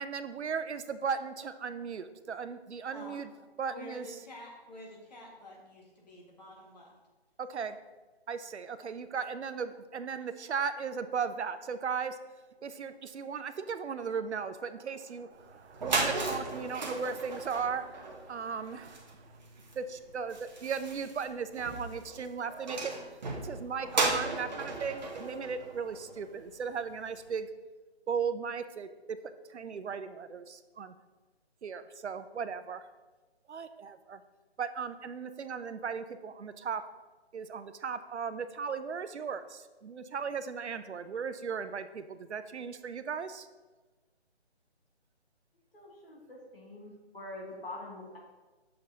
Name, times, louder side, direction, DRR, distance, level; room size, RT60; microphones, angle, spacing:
voice 1, 0.0-3.3 3.6-4.1 7.4-7.8 8.3-12.2 12.6-19.4 19.7-22.9 23.4-27.5 28.1-29.2 29.5-31.0 31.6-32.9 33.5-34.2 34.6-36.8 37.3-43.5, right 6 dB, 85° right, 11 dB, 0.6 m, -36 dB
voice 2, 2.9-3.3 3.7-6.9, left 2 dB, 40° left, -2 dB, 1.7 m, -49 dB
sound 1, 15.4-15.5 15.7-26.5, right 3 dB, 40° right, 1.0 m, -36 dB
voice 3, 45.7-48.2, left 2 dB, 60° left, -3 dB, 2.4 m, -45 dB
7.9 x 6.4 x 2.8 m, 1.2 s
figure-of-eight pair, 165°, 33 cm